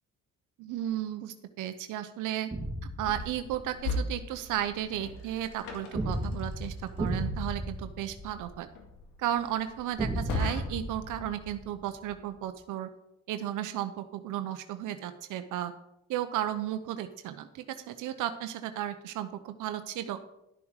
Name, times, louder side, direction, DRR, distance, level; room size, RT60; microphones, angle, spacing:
voice 1, 0.6-2.5 2.8-8.7 9.2-12.9 13.3-15.7 16.1-20.2, right 12 dB, 85° right, 9 dB, 0.8 m, -34 dB
sound 1, 2.5-3.9 5.9-8.9 10.0-12.1, right 1 dB, 15° right, 2.2 m, -35 dB
sound 2, 3.0-11.0, left 2 dB, 85° left, 2.1 m, -40 dB
11.5 x 7.1 x 4.9 m, 0.85 s
cardioid pair, 90°, 30 cm